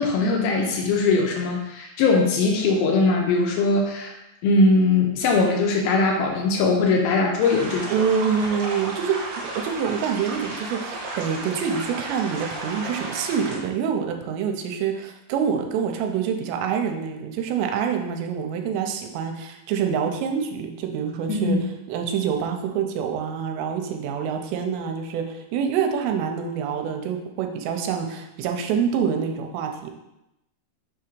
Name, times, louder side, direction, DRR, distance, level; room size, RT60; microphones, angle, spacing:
voice 1, 0.0-4.1 4.4-7.9 21.3-21.6, left 3 dB, 85° left, 0 dB, 2.2 m, -20 dB
sound 1, 7.4-13.6, right 2 dB, 60° right, 2.6 m, -33 dB
voice 2, 7.9-21.6 21.9-29.9, right 7 dB, 90° right, 4 dB, 2.8 m, -26 dB
6.7 x 2.8 x 5.1 m, 0.89 s
omnidirectional pair, 5.0 m